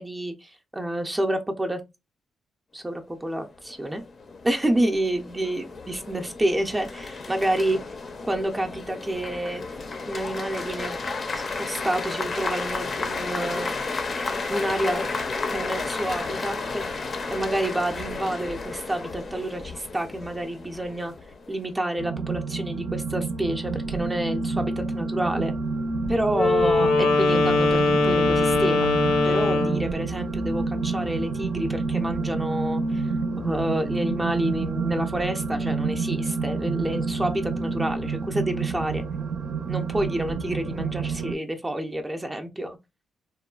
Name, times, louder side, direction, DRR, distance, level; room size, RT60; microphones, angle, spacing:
voice 1, 0.0-1.8 2.7-4.0 4.4-7.8 8.2-9.6 10.1-11.0 11.3-13.8 14.5-15.1 15.5-16.8 17.3-21.1 21.5-25.5 26.1-28.9 29.2-33.1 33.4-39.0 39.7-42.8, right 1 dB, 15° right, 0.4 m, -28 dB
sound 1, 3.5-21.7, left 3 dB, 40° left, 0.5 m, -33 dB
sound 2, 22.0-41.3, right 4 dB, 70° right, 0.5 m, -29 dB
Wind instrument woodwind instrument, 26.3-29.9, left 3 dB, 85° left, 0.6 m, -21 dB
2.9 x 2.1 x 2.3 m
cardioid pair, 105°, 0 cm